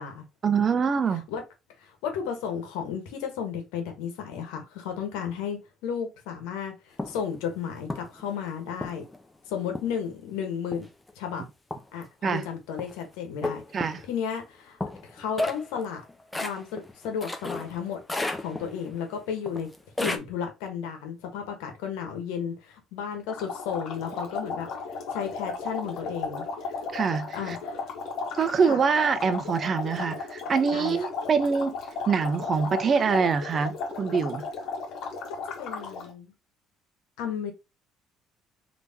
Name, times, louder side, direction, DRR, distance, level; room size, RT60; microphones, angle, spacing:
voice 1, 0.4-1.2 12.2-12.4 13.7-14.0 26.9-27.6 28.3-31.8 32.1-34.5, right 5 dB, 40° right, 0.6 m, -25 dB
voice 2, 1.8-9.0 9.5-10.9 11.1-11.4 11.9-13.6 14.1-16.0 16.4-18.0 18.4-19.7 20.0-24.7 25.1-26.8 27.3-27.8 28.7-28.8 30.7-31.0 35.3-36.3 37.2-37.5, left 7 dB, 85° left, 1.2 m, -33 dB
sound 1, 7.0-7.2 7.9-8.2 8.8-9.2 9.8-10.1 10.7-11.1 11.7-12.0 12.8-13.0 13.4-14.1 14.8-17.8 18.1-18.9 19.5-20.2, left 2 dB, 15° left, 0.7 m, -32 dB
sound 2, 23.3-36.1, left 4 dB, 65° left, 1.3 m, -35 dB
3.5 x 2.9 x 2.8 m
supercardioid pair, 85°, 0 cm